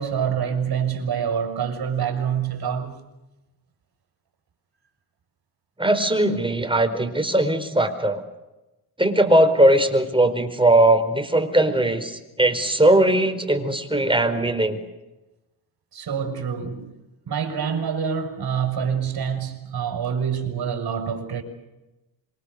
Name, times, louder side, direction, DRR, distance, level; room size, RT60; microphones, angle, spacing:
voice 1, 0.0-3.0 15.9-16.9 17.3-21.4, right 7 dB, 55° right, 6.7 m, -26 dB
voice 2, 5.8-8.2 9.0-14.8, right 1 dB, 10° right, 4.8 m, -19 dB
27.0 x 24.5 x 6.8 m
cardioid pair, 70°, 44 cm